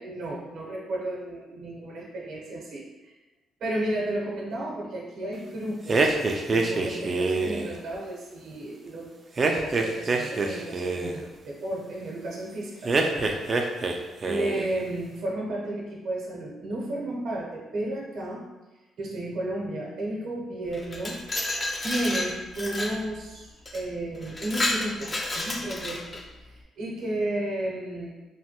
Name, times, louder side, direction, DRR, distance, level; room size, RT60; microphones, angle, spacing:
voice 1, 0.0-3.1 3.6-6.2 6.5-13.4 14.3-18.5 19.0-21.2 21.8-28.1, right 1 dB, 75° right, -3 dB, 0.8 m, -33 dB
sound 1, 5.9-7.7 9.4-11.2 12.8-14.0 14.2-14.7, right 3 dB, 40° right, 0.3 m, -25 dB
Glass, 20.7-23.0 23.7-23.8 24.2-26.2, left 2 dB, 30° left, 0.4 m, -30 dB
3.1 x 2.2 x 2.9 m, 1.1 s
cardioid pair, 90°, 0 cm